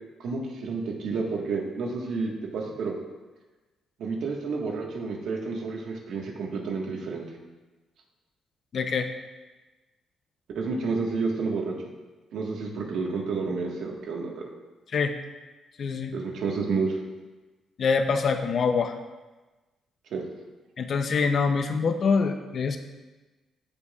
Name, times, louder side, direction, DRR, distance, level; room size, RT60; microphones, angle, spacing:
voice 1, 0.2-2.9 4.0-7.3 10.5-11.7 12.3-14.3 16.1-17.0 20.1-20.2, right 4 dB, 75° right, 0 dB, 1.5 m, -30 dB
voice 2, 8.7-9.1 14.9-15.1 15.8-16.1 17.8-18.9 20.8-22.8, left 5 dB, 50° left, 7 dB, 0.6 m, -25 dB
14.0 x 5.5 x 2.4 m, 1.2 s
cardioid pair, 105°, 0 cm